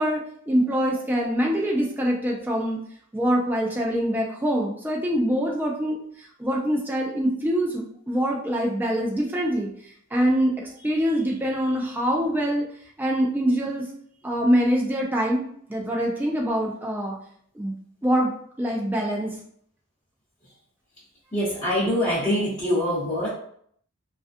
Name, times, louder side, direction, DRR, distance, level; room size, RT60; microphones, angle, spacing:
voice 1, 0.0-2.8 3.1-9.7 10.1-12.6 13.0-13.8 14.2-15.4 15.7-17.2 17.6-17.7 18.0-19.4, equal, 10° right, -2 dB, 0.3 m, -24 dB
voice 2, 21.3-23.3, equal, 20° left, -12 dB, 0.9 m, -24 dB
2.4 x 2.2 x 2.5 m, 0.63 s
head